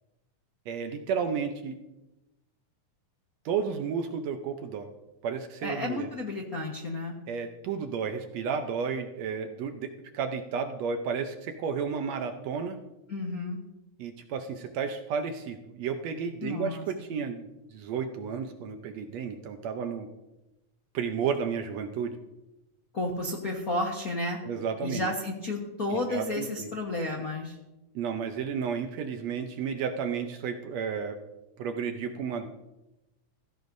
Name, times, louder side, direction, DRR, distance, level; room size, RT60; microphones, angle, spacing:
voice 1, 0.7-1.7 3.4-4.9 5.2-6.1 7.3-12.8 14.0-20.1 20.9-22.2 24.4-25.1 26.1-26.7 27.9-31.2 31.6-32.5, right 6 dB, 70° right, 6 dB, 1.8 m, -32 dB
voice 2, 5.6-7.1 13.1-13.6 16.4-16.8 22.9-24.4 24.8-27.6, left 2 dB, 55° left, 0 dB, 1.0 m, -32 dB
16.0 x 15.0 x 2.7 m, 0.98 s
omnidirectional pair, 3.5 m